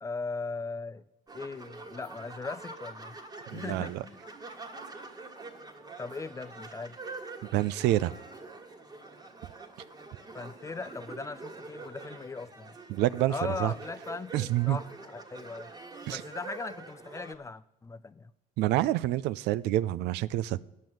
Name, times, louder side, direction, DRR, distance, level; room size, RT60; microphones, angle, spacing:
voice 1, 0.0-1.0 1.3-3.2 3.5-4.2 6.0-7.0 10.3-12.8 13.3-15.7 16.1-18.3, left 4 dB, 20° left, 14 dB, 0.4 m, -39 dB
sound 1, 1.3-17.3, right 3 dB, 20° right, 1.5 m, -45 dB
voice 2, 3.5-4.0 7.5-8.1 12.9-13.3 13.6-13.7 14.3-14.8 16.1-16.2 18.6-20.6, right 15 dB, 85° right, 18 dB, 0.4 m, -27 dB
10.5 x 7.5 x 7.8 m, 0.86 s
cardioid pair, 110°, 17 cm